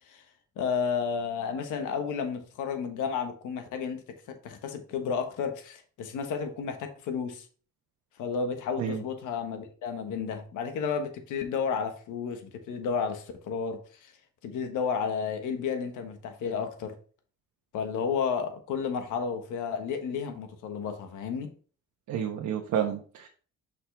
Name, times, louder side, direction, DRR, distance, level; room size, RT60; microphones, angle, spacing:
voice 1, 0.6-7.5 8.2-14.1 14.4-17.0 17.7-21.5, left 6 dB, 90° left, 1.4 m, -32 dB
voice 2, 22.1-23.3, right 8 dB, 75° right, 1.1 m, -30 dB
6.1 x 5.5 x 3.4 m
cardioid pair, 90°, 30 cm